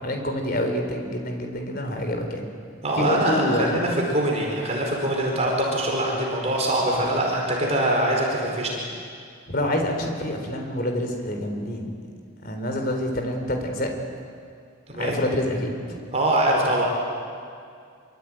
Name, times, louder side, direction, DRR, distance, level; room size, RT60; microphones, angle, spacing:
voice 1, 0.0-2.5 3.0-3.8 6.9-7.2 9.5-11.9 12.4-13.9 14.9-16.0, left 1 dB, 45° left, 4 dB, 4.0 m, -27 dB
voice 2, 2.8-8.8 14.9-15.2 16.1-16.9, right 1 dB, 30° right, -1 dB, 4.7 m, -23 dB
26.0 x 24.0 x 9.1 m, 2.3 s
head